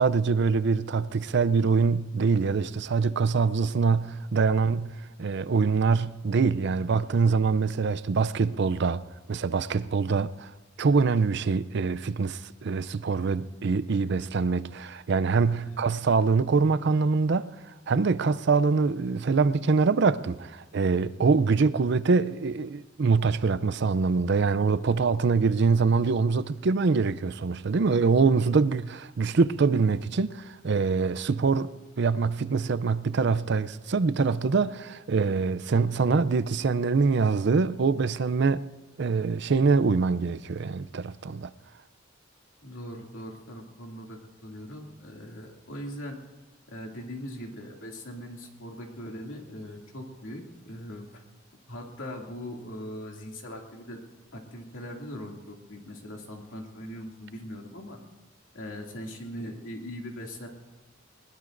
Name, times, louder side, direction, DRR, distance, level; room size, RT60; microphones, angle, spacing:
voice 1, 0.0-4.9 5.2-9.0 9.3-10.5 10.8-17.5 17.9-31.7 32.0-38.6 39.0-41.5, right 4 dB, 60° right, 0.5 m, -24 dB
voice 2, 42.6-46.2 46.7-51.2 51.7-54.0 54.3-58.0 58.5-60.5, equal, 85° left, 2.5 m, -40 dB
21.5 x 20.0 x 2.6 m
head